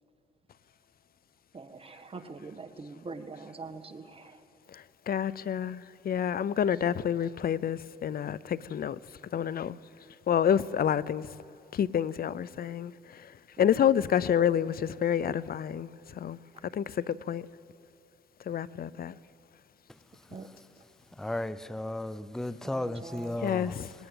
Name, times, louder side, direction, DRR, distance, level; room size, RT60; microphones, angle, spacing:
voice 1, 1.5-4.4 14.0-14.2 20.3-20.5 22.6-23.4, right 3 dB, 30° right, 8 dB, 1.7 m, -44 dB
voice 2, 4.7-9.0 9.3-9.8 10.3-11.3 11.7-13.2 13.6-16.4 16.7-17.4 18.5-19.1 23.4-23.9, left 9 dB, 50° left, 20 dB, 0.6 m, -28 dB
voice 3, 21.2-23.7, left 1 dB, ahead, 15 dB, 0.6 m, -34 dB
20.0 x 19.5 x 9.0 m, 2.9 s
cardioid pair, 90°, 20 cm